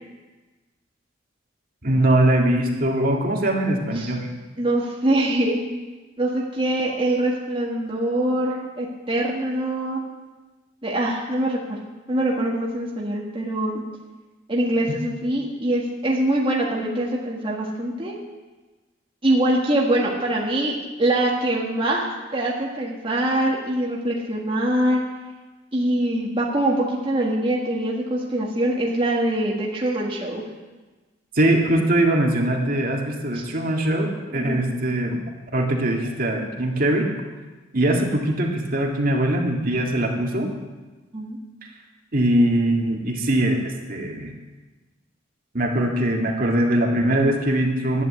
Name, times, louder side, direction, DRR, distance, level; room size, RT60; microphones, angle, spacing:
voice 1, 1.8-4.3 31.3-35.2 35.5-37.1 37.7-40.5 42.1-44.3 45.5-48.0, right 1 dB, 50° right, 0 dB, 2.1 m, -21 dB
voice 2, 4.6-5.6 6.2-10.0 10.8-11.8 12.1-13.8 14.5-18.2 19.2-25.0 25.7-30.4 33.3-33.4 34.3-34.7 41.1-41.4, right 1 dB, 25° right, -3 dB, 1.8 m, -23 dB
11.5 x 10.5 x 7.9 m, 1.2 s
head